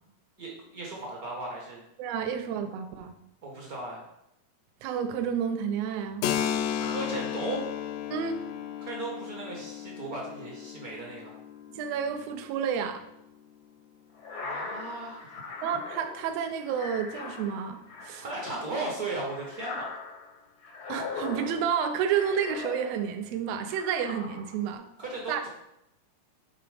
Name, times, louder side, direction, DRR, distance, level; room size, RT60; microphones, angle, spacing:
voice 1, 0.4-1.8 3.4-4.0 6.8-7.8 8.8-11.4 14.3-15.5 18.2-19.9 25.0-25.5, right 2 dB, 55° right, -2 dB, 1.0 m, -36 dB
voice 2, 2.0-3.1 4.8-6.2 8.1-8.4 11.7-13.0 15.6-18.2 20.9-24.9 25.3-25.4, right 7 dB, 80° right, 8 dB, 1.5 m, -30 dB
Keyboard (musical), 6.2-13.6, left 9 dB, 80° left, 2.0 m, -35 dB
sound 1, 14.2-23.3 23.7-24.7, left 4 dB, 60° left, 1.0 m, -40 dB
8.9 x 4.0 x 5.0 m, 0.82 s
omnidirectional pair, 3.7 m